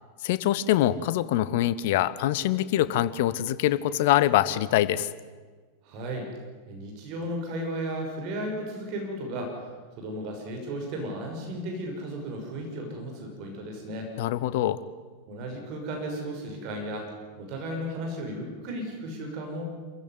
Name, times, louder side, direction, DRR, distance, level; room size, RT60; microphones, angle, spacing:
voice 1, 0.2-5.1 14.2-14.8, left 13 dB, 50° left, 15 dB, 1.1 m, -24 dB
voice 2, 5.8-6.3 6.7-9.6 10.0-14.1 15.3-17.1 17.4-19.6, right 1 dB, 40° right, 2 dB, 6.1 m, -34 dB
26.5 x 15.5 x 9.8 m, 1.4 s
figure-of-eight pair, 90°, 0 cm